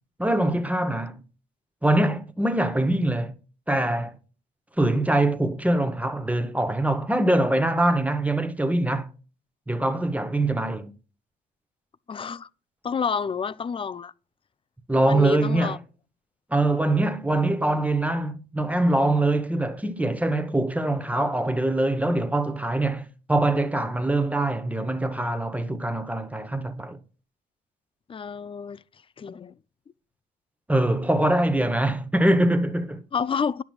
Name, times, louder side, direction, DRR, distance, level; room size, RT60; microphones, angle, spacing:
voice 1, 0.2-1.2 1.8-3.4 3.7-4.2 4.8-9.1 9.7-10.9 14.9-15.8 16.5-27.0 30.7-33.0, right 1 dB, 5° right, 0.8 m, -23 dB
voice 2, 12.1-12.5 12.8-14.1 15.0-15.8 28.1-28.8 29.2-29.5 33.1-33.6, left 6 dB, 25° left, 0.3 m, -29 dB
10.0 x 5.9 x 2.3 m
supercardioid pair, 60°, 21 cm